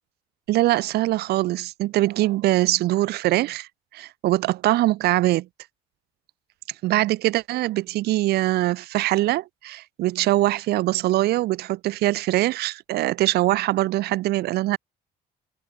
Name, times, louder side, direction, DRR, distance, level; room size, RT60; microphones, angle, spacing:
voice 1, 0.5-3.7 3.9-5.5 6.8-14.8, right 16 dB, 75° right, 0.7 m, -22 dB
cardioid pair, 110°, 17 cm